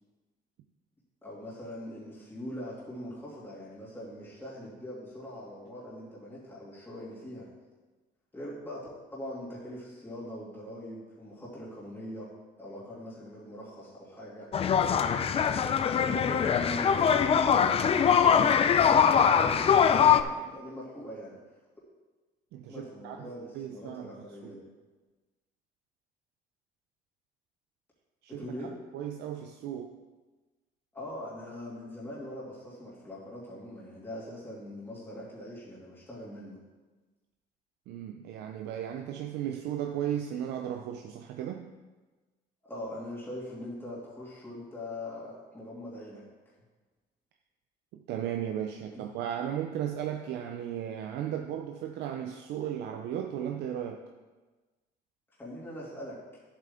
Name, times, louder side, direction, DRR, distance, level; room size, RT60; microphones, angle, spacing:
voice 1, 1.2-7.5 8.3-12.3 12.6-14.5 15.9-21.4 22.7-24.7 28.4-28.8 30.9-36.6 42.6-46.2 48.9-49.0 55.4-56.2, left 1 dB, 15° left, -7 dB, 2.7 m, -42 dB
sound 1, 14.5-20.2, left 7 dB, 35° left, 0.5 m, -22 dB
voice 2, 22.5-24.1 24.4-24.5 28.2-28.5 28.9-30.0 37.9-41.7 47.9-54.1, right 10 dB, 85° right, 4 dB, 0.6 m, -35 dB
10.0 x 8.0 x 3.7 m, 1.2 s
cardioid pair, 110°, 17 cm